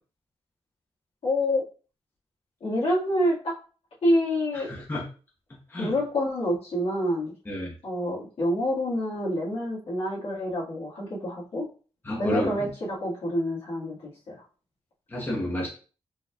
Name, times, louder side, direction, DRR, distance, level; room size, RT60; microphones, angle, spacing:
voice 1, 1.2-1.6 2.6-3.6 4.0-4.7 5.8-7.3 7.8-11.7 12.2-14.4, left 1 dB, 70° left, -6 dB, 1.8 m, -27 dB
voice 2, 4.7-5.0 5.7-5.9 7.5-7.7 12.0-12.7 15.1-15.7, left 1 dB, 20° left, -4 dB, 1.0 m, -30 dB
4.5 x 3.1 x 2.3 m, 0.37 s
wide cardioid pair, 145°, 10 cm